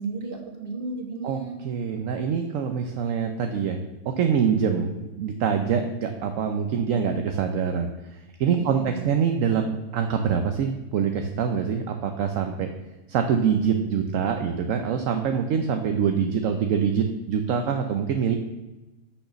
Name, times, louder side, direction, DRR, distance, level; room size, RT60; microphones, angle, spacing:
voice 1, 0.0-1.6 8.6-9.1, right 4 dB, 40° right, 3 dB, 1.5 m, -34 dB
voice 2, 1.2-3.8 4.1-12.7 13.1-18.3, right 7 dB, 65° right, 6 dB, 1.0 m, -25 dB
6.4 x 5.9 x 6.8 m, 1.1 s
omnidirectional pair, 1.5 m